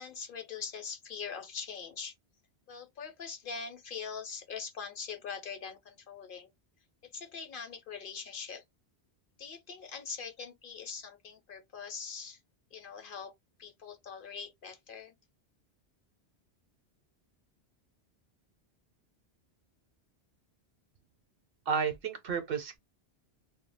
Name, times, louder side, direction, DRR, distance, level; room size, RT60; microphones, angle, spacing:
voice 1, 0.0-2.1 2.7-6.5 7.1-8.6 9.4-12.4 12.7-13.3 13.6-15.1, left 6 dB, 60° left, 0.7 m, -42 dB
voice 2, 21.7-22.8, right 6 dB, 65° right, 0.8 m, -32 dB
2.3 x 2.1 x 3.3 m
omnidirectional pair, 1.1 m